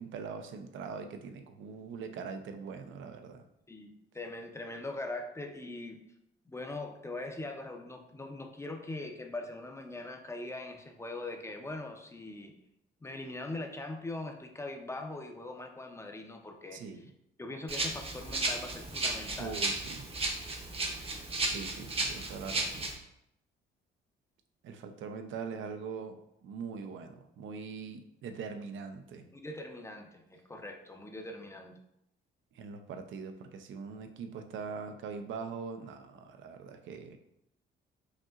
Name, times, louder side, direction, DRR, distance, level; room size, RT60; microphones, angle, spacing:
voice 1, 0.0-3.4 16.7-17.1 19.4-20.1 21.4-22.9 24.6-29.3 32.5-37.2, right 5 dB, 75° right, 7 dB, 0.5 m, -42 dB
voice 2, 3.7-6.0 6.5-12.5 13.0-17.1 17.4-19.6 29.3-31.8, left 2 dB, 15° left, 4 dB, 0.5 m, -41 dB
Rattle (instrument), 17.7-22.9, right 2 dB, 30° right, 0.7 m, -34 dB
5.1 x 2.8 x 2.4 m, 0.80 s
cardioid pair, 90°, 20 cm